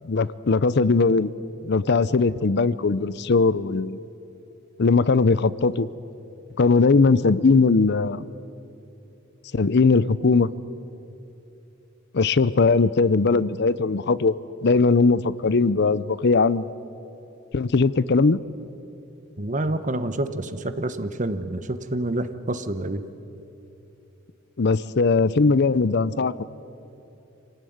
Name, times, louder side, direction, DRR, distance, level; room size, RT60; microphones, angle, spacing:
voice 1, 0.0-1.3 1.6-4.0 4.8-5.9 6.6-8.2 9.5-10.5 12.1-14.3 14.6-16.7 17.5-18.4 24.6-26.4, left 4 dB, 55° left, 18 dB, 0.6 m, -19 dB
voice 2, 19.4-23.0, right 1 dB, 40° right, 11 dB, 1.1 m, -28 dB
25.5 x 18.5 x 9.4 m, 2.9 s
head